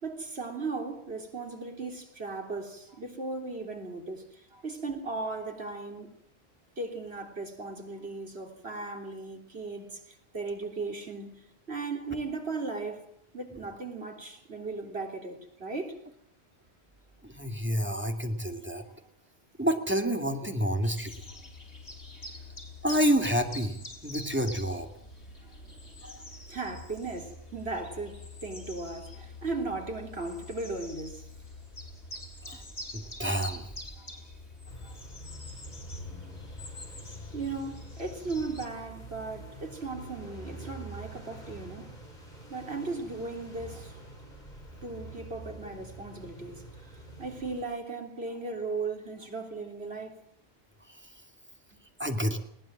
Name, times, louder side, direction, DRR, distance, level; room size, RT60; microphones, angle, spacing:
voice 1, 0.0-6.1 6.8-11.4 11.7-13.1 13.3-16.0 26.5-31.3 32.5-32.6 34.0-34.1 34.8-35.0 37.3-41.9 42.5-44.0 44.8-46.6 47.2-50.2, right 3 dB, 70° right, 3.7 m, -37 dB
voice 2, 17.2-18.8 19.6-21.1 22.8-23.8 24.0-24.9 26.0-26.2 32.5-32.6 32.9-33.6 50.9-51.1 52.0-52.4, equal, 10° right, 2.5 m, -29 dB
sound 1, 20.8-38.7, left 2 dB, 85° left, 4.6 m, -45 dB
sound 2, 34.7-47.6, right 2 dB, 40° left, 4.9 m, -46 dB
21.0 x 18.5 x 7.6 m
omnidirectional pair, 1.1 m